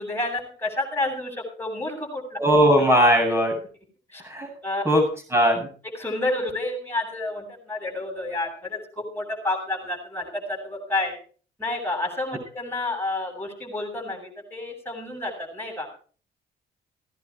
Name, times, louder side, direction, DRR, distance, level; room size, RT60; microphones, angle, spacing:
voice 1, 0.0-2.4 4.1-4.2 4.6-4.8 5.9-11.1 11.6-15.9, left 2 dB, 10° left, 1 dB, 7.6 m, -30 dB
voice 2, 2.4-3.5 4.2-4.5 4.8-5.0 5.3-5.7, equal, 15° right, 2 dB, 8.0 m, -18 dB
17.5 x 11.0 x 4.7 m, 0.41 s
cardioid pair, 90°, 20 cm